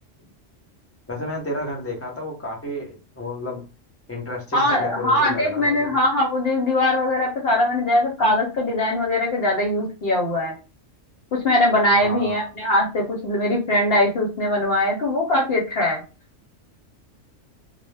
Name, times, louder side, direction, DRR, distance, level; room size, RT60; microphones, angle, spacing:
voice 1, 1.1-3.6 4.1-6.0 12.0-12.5, left 1 dB, 15° left, -1 dB, 0.5 m, -31 dB
voice 2, 4.5-10.5 11.3-16.0, left 1 dB, 60° left, -2 dB, 0.7 m, -21 dB
2.1 x 2.1 x 3.2 m, 0.32 s
omnidirectional pair, 1.3 m